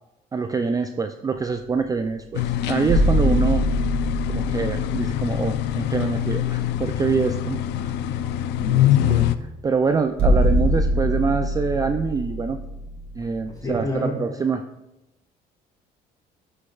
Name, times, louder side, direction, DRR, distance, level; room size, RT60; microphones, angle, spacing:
voice 1, 0.3-3.6 4.3-7.9 9.0-12.6 13.2-14.6, right 5 dB, 20° right, 7 dB, 0.3 m, -25 dB
sound 1, 2.3-9.4, left 12 dB, 85° left, 0.4 m, -24 dB
sound 2, 2.9-6.4 6.7-6.8 10.2-13.8, equal, 70° right, 2.4 m, -23 dB
voice 2, 8.6-9.0 13.5-14.2, left 1 dB, 20° left, -1 dB, 2.5 m, -29 dB
11.5 x 6.6 x 2.4 m, 0.93 s
cardioid pair, 110°, 17 cm